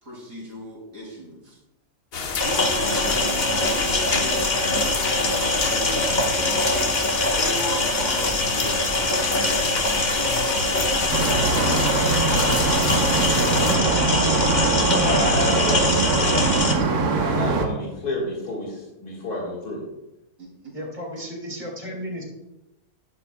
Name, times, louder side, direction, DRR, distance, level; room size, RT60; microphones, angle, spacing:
voice 1, 0.0-1.6 2.4-6.9 7.3-9.6 10.4-12.1 20.4-20.7, equal, 60° right, -2 dB, 3.4 m, -37 dB
sound 1, 2.1-13.8, left 4 dB, 65° left, 1.6 m, -30 dB
sound 2, 2.4-16.7, left 2 dB, 35° left, 1.1 m, -23 dB
sound 3, 11.1-17.7, right 3 dB, 85° right, 1.7 m, -22 dB
voice 2, 15.0-16.1 17.1-19.9, left 1 dB, 80° left, -4 dB, 2.6 m, -29 dB
voice 3, 20.7-22.2, equal, 30° right, -3 dB, 2.8 m, -34 dB
12.5 x 10.0 x 2.3 m, 0.96 s
omnidirectional pair, 1.6 m